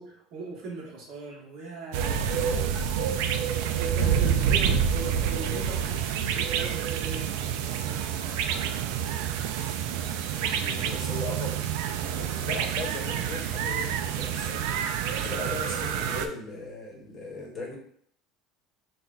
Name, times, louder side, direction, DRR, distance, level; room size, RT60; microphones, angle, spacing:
voice 1, 0.0-2.8 3.6-10.0, right 3 dB, 55° right, -1 dB, 1.0 m, -41 dB
sound 1, 1.9-16.3, right 8 dB, 80° right, 0.3 m, -28 dB
voice 2, 2.0-2.9 10.4-11.7 12.1-17.8, left 2 dB, 30° left, 0 dB, 0.9 m, -38 dB
5.6 x 2.2 x 2.4 m, 0.62 s
cardioid pair, 165°, 0 cm